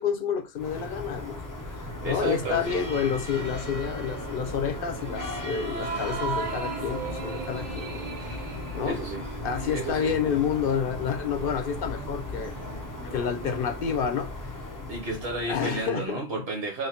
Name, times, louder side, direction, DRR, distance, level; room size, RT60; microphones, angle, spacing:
voice 1, 0.0-1.5 2.0-8.1 8.7-9.0 9.4-12.5 13.0-14.3 15.4-16.2, left 7 dB, 60° left, 0.7 m, -29 dB
sound 1, 0.6-16.0, left 2 dB, 25° left, 0.4 m, -37 dB
sound 2, 1.8-13.8, right 8 dB, 85° right, 0.9 m, -45 dB
voice 2, 2.0-3.0 4.2-4.3 8.8-9.2 9.7-10.3 14.9-16.9, right 3 dB, 65° right, 1.1 m, -32 dB
sound 3, 5.5-10.2, right 4 dB, 50° right, 0.8 m, -36 dB
3.3 x 2.2 x 4.2 m
omnidirectional pair, 1.2 m